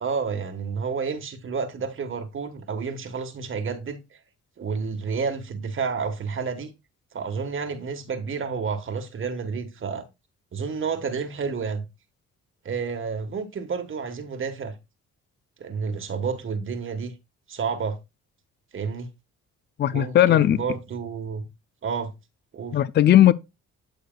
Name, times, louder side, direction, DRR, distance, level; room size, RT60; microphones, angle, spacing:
voice 1, 0.0-4.0 4.6-6.7 7.1-10.0 10.5-11.8 12.6-14.7 15.6-17.1 17.5-18.0 18.7-19.1 19.9-21.4 21.8-22.1 22.5-22.8, right 5 dB, 45° right, 1.3 m, -30 dB
voice 2, 19.8-20.6 22.7-23.3, left 12 dB, 35° left, 0.4 m, -17 dB
9.0 x 6.6 x 2.3 m
cardioid pair, 90°, 30 cm